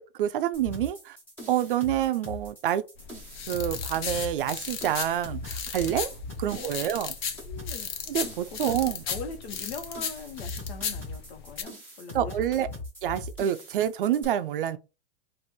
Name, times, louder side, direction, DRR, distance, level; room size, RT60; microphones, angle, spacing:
voice 1, 0.2-1.2 1.5-2.8 3.5-6.1 6.4-7.1 8.1-9.0 12.1-12.7 13.0-14.8, right 11 dB, 50° right, 0.4 m, -27 dB
sound 1, 0.5-14.2, left 2 dB, 5° left, 0.6 m, -41 dB
sound 2, 3.0-11.6, left 7 dB, 45° left, 0.7 m, -36 dB
voice 2, 6.1-7.1 7.4-7.9 8.3-12.8, left 4 dB, 70° left, 1.2 m, -42 dB
4.0 x 2.6 x 4.6 m
supercardioid pair, 180°, 34 cm